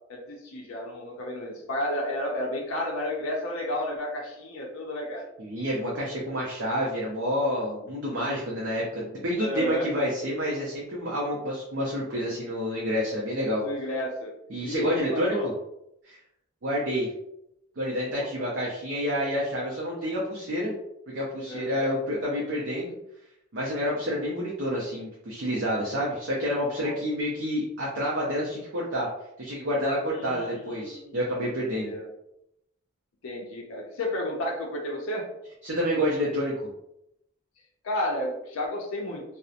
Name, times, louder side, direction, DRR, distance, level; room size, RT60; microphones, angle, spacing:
voice 1, 0.1-5.3 9.4-9.9 13.6-14.3 14.6-15.5 18.1-18.3 21.5-21.9 26.8-27.0 30.1-31.2 31.7-32.1 33.2-35.3 37.8-39.2, left 1 dB, 70° left, -1 dB, 0.5 m, -32 dB
voice 2, 5.4-13.6 14.5-15.5 16.0-16.2 16.6-17.1 17.8-20.7 21.1-22.9 23.5-29.1 29.4-31.9 35.6-36.5, equal, 55° right, -4 dB, 0.5 m, -28 dB
2.7 x 2.0 x 2.4 m, 0.81 s
head